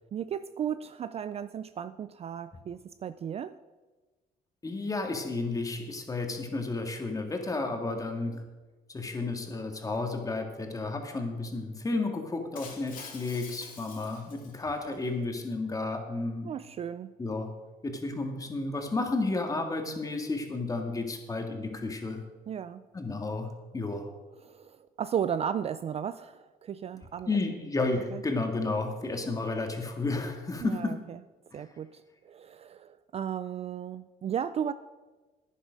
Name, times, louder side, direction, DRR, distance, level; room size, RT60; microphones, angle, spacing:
voice 1, 0.1-3.6 16.4-17.1 22.5-22.8 24.4-27.3 28.1-28.2 30.6-31.2 31.5-34.7, right 8 dB, 35° right, 13 dB, 0.4 m, -35 dB
voice 2, 4.6-8.4 8.9-16.5 17.2-17.5 17.8-22.2 22.9-23.5 23.7-24.1 27.3-31.0 31.5-31.6, left 3 dB, 20° left, 4 dB, 1.9 m, -32 dB
Shatter, 12.5-14.9, left 5 dB, 55° left, 2.5 m, -46 dB
11.0 x 10.0 x 5.2 m, 1.2 s
cardioid pair, 110°, 17 cm